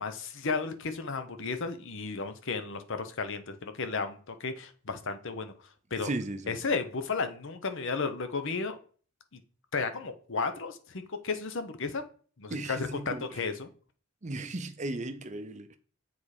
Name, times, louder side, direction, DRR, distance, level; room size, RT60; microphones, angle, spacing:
voice 1, 0.0-5.5 5.9-6.1 6.5-8.8 9.7-12.0 12.4-13.7, left 4 dB, 55° left, 0.8 m, -33 dB
voice 2, 6.0-6.6 12.5-13.3 14.2-15.8, right 2 dB, 30° right, 0.6 m, -36 dB
7.2 x 4.3 x 4.8 m
head